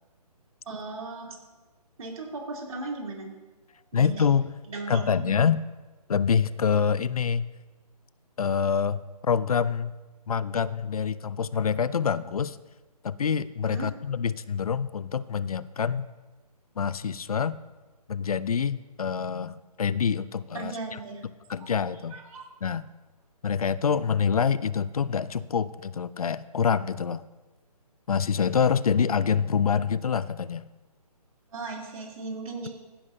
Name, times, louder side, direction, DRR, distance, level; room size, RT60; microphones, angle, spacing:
voice 1, 0.6-1.4 2.0-3.3 3.9-4.3 4.7-5.4 13.7-13.9 20.5-21.3 21.6-21.8 22.1-22.5 31.5-32.7, right 3 dB, 60° right, -1 dB, 3.4 m, -37 dB
voice 2, 3.9-4.5 4.9-5.6 6.1-7.5 8.4-9.9 10.3-12.6 13.0-16.1 16.8-17.6 18.1-21.0 21.5-22.2 22.6-22.8 23.4-27.2 28.1-30.6, left 7 dB, 65° left, 18 dB, 0.5 m, -26 dB
15.5 x 10.5 x 2.8 m, 1.2 s
figure-of-eight pair, 145°, 20 cm